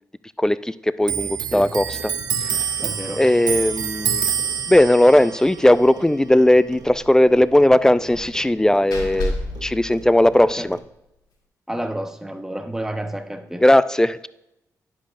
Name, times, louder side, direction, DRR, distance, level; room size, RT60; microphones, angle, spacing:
voice 1, 0.4-2.1 3.2-4.2 4.7-9.3 9.6-10.8 13.6-14.3, left 1 dB, 10° left, 16 dB, 0.3 m, -17 dB
Clock, 1.0-8.1 8.3-9.7 9.9-10.8, right 7 dB, 70° right, 0.7 m, -28 dB
voice 2, 2.8-3.2 10.4-10.7 11.7-13.6, right 1 dB, 5° right, 7 dB, 0.9 m, -30 dB
Slam, 5.1-5.4 5.7-5.8 6.2-6.3 8.1-10.7, left 1 dB, 80° left, 2.0 m, -32 dB
10.5 x 7.5 x 2.6 m, 0.88 s
cardioid pair, 70°, 7 cm